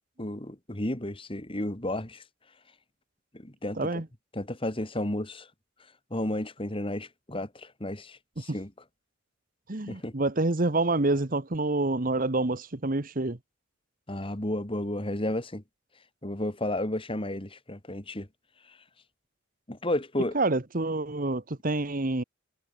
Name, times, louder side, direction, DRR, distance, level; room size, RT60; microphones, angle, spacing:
voice 1, 0.2-2.2 3.3-4.0 4.3-5.5 6.1-8.7 9.9-10.1 14.1-15.6 16.2-18.3 19.7-20.4, left 1 dB, 25° left, 2.2 m, -32 dB
voice 2, 3.8-4.1 8.5-8.6 9.7-13.4 20.3-22.2, right 2 dB, 45° right, 1.2 m, -27 dB
head